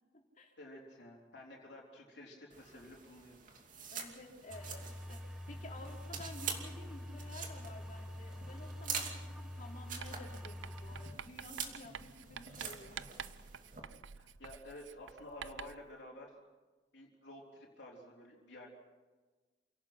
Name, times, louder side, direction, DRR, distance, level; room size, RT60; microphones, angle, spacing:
voice 1, 0.6-3.4 14.2-16.3 16.9-18.7, left 1 dB, 65° left, -2 dB, 3.9 m, -52 dB
sound 1, 2.5-13.8, right 6 dB, 45° right, 2.7 m, -46 dB
voice 2, 3.9-13.3, left 2 dB, 45° left, 1 dB, 3.7 m, -52 dB
sound 2, 4.5-11.1, left 1 dB, 5° right, 1.4 m, -46 dB
Writing, 10.0-15.9, right 7 dB, 85° right, 0.6 m, -49 dB
28.0 x 17.5 x 5.9 m, 1.3 s
head